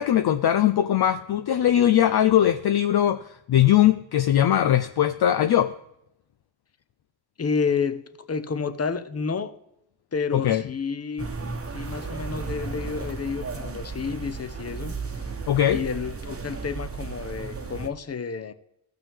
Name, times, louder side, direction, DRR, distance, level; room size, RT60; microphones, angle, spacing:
voice 1, 0.0-3.2 3.5-5.7 10.3-10.6 15.5-15.8, left 11 dB, 50° left, 0.6 m, -20 dB
voice 2, 7.4-9.5 10.1-11.3 11.7-14.9 15.7-18.5, left 5 dB, 30° left, 0.9 m, -30 dB
sound 1, 11.2-17.9, right 4 dB, 30° right, 1.1 m, -34 dB
15.0 x 6.0 x 3.5 m
supercardioid pair, 45°, 49 cm